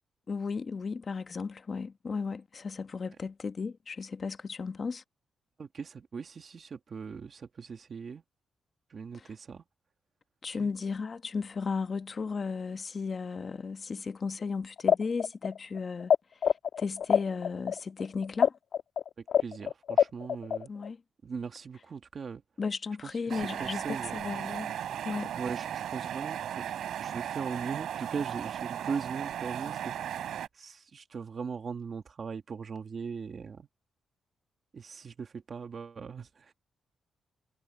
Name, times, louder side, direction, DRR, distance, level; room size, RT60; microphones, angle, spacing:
voice 1, 0.3-5.0 9.1-9.3 10.4-16.1 16.8-18.5 20.7-21.0 22.6-24.7 25.0-25.3, left 5 dB, 35° left, 1.1 m, -35 dB
voice 2, 5.6-8.2 8.9-9.6 10.6-10.7 19.4-20.7 21.2-22.4 23.0-24.3 25.4-26.6 27.0-30.2 30.5-33.7 34.7-36.5, right 5 dB, 40° right, 1.8 m, -39 dB
sound 1, 14.8-16.2 16.4-20.9, left 8 dB, 65° left, 1.3 m, -25 dB
sound 2, 23.3-30.5, right 10 dB, 75° right, 4.0 m, -36 dB
wide cardioid pair, 145°, 0 cm